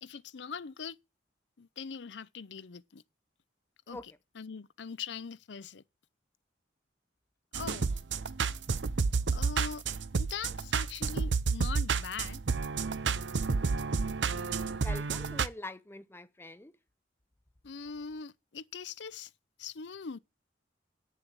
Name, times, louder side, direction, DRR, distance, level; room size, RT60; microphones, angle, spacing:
voice 1, 0.0-1.0 1.6-3.0 3.9-5.8 7.5-8.0 9.3-9.8 10.2-12.4 17.6-19.3 19.6-20.2, left 6 dB, 70° left, 0.6 m, -42 dB
sound 1, 7.5-15.5, right 5 dB, 75° right, 0.7 m, -30 dB
voice 2, 14.7-16.7, left 2 dB, 15° left, 0.6 m, -44 dB
9.5 x 7.0 x 8.5 m
head